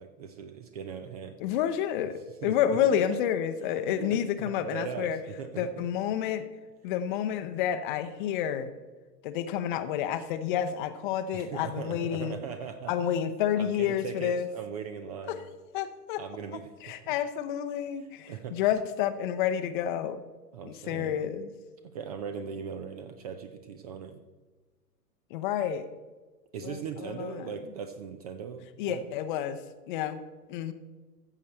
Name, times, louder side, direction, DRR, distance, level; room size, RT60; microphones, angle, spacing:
voice 1, 0.0-1.4 2.4-3.2 3.9-5.7 11.3-12.9 13.6-15.5 16.2-16.7 18.3-18.6 20.5-21.2 21.9-24.2 26.5-29.1, right 7 dB, 25° right, 9 dB, 0.5 m, -39 dB
voice 2, 1.4-5.2 5.6-6.5 6.8-8.7 9.2-12.4 12.9-14.5 15.3-15.4 15.7-16.2 16.8-20.2 20.6-21.5 25.3-25.9 26.6-27.5 28.8-29.6 29.9-30.2 30.5-30.7, left 10 dB, 30° left, 10 dB, 0.7 m, -29 dB
14.0 x 7.5 x 4.3 m, 1.3 s
figure-of-eight pair, 105°, 49 cm